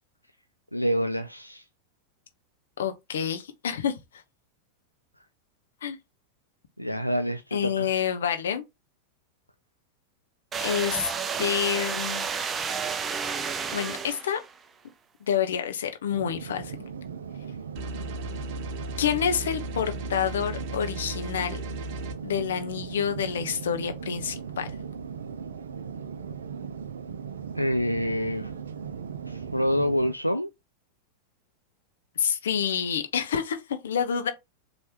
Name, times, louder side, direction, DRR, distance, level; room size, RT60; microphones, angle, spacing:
voice 1, 0.7-1.6 6.8-7.9 27.6-28.5 29.3-30.5, equal, 90° left, 0.3 m, -27 dB
voice 2, 2.8-4.0 5.8-6.0 7.5-8.6 10.6-11.1 11.4-12.3 13.7-14.4 15.3-16.8 19.0-21.6 22.2-24.7 32.2-34.3, left 8 dB, 65° left, 0.9 m, -28 dB
sound 1, 10.5-14.5, right 6 dB, 20° right, 0.5 m, -31 dB
sound 2, 16.1-30.1, right 6 dB, 65° right, 0.4 m, -38 dB
sound 3, 17.8-22.1, right 1 dB, 45° right, 0.8 m, -36 dB
4.5 x 3.1 x 2.9 m
figure-of-eight pair, 90°, 0 cm